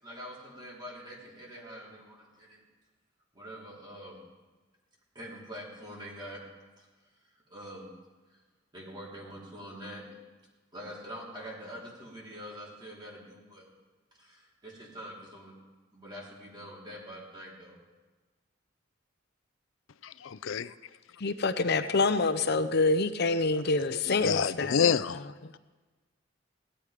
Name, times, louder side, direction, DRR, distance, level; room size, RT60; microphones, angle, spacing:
voice 1, 0.0-2.6 3.3-4.3 5.2-6.9 7.5-7.9 8.7-10.2 10.7-13.7 14.2-15.6 15.9-17.8, equal, 25° right, 3.5 m, -45 dB
voice 2, 20.0-20.7 24.1-25.2, left 7 dB, 80° left, 0.5 m, -28 dB
voice 3, 21.2-24.8 25.4-25.5, left 3 dB, 55° left, 0.8 m, -26 dB
17.5 x 11.5 x 5.1 m
head